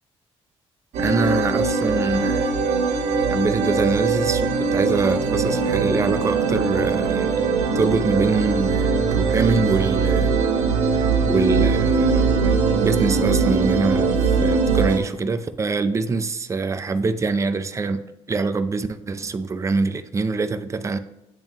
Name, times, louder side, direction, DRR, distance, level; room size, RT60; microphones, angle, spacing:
sound 1, 0.9-15.0, right 4 dB, 90° right, 1.0 m, -21 dB
voice 1, 1.0-2.6 3.3-7.4 7.7-10.4 11.0-18.0 18.3-21.0, right 4 dB, 25° right, 9 dB, 0.5 m, -24 dB
9.1 x 3.6 x 3.0 m, 0.96 s
cardioid pair, 100°, 12 cm